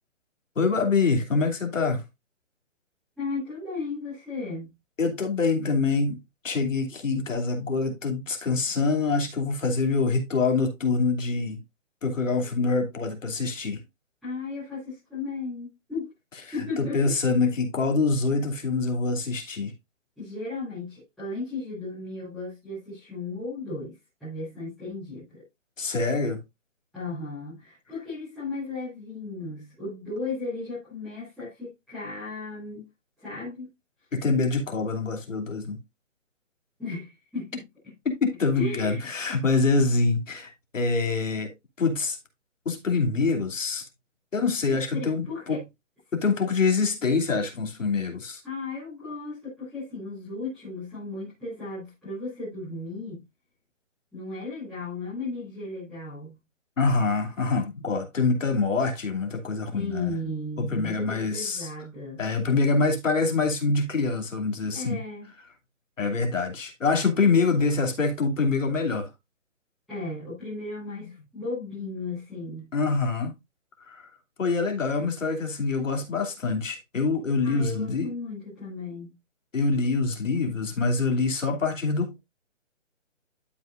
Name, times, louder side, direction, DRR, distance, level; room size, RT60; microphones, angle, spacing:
voice 1, 0.6-2.0 5.0-6.2 6.4-11.6 12.0-13.8 16.8-19.7 25.8-26.4 34.1-35.8 38.0-42.2 42.6-43.9 44.3-45.6 46.1-48.4 56.8-60.2 60.6-61.7 62.2-65.0 66.0-69.1 71.0-71.1 72.7-73.3 73.8-74.1 74.4-78.1 79.5-82.2, left 4 dB, 80° left, 2.8 m, -25 dB
voice 2, 3.1-4.7 14.2-16.1 16.5-17.1 20.2-25.4 26.9-32.8 33.2-33.7 36.8-37.6 38.5-39.1 44.9-45.6 48.4-53.2 54.1-56.3 59.7-62.2 64.7-65.3 69.9-72.7 77.4-79.1, left 3 dB, ahead, 0.8 m, -35 dB
12.0 x 5.3 x 2.5 m
hypercardioid pair, 180°, 38 cm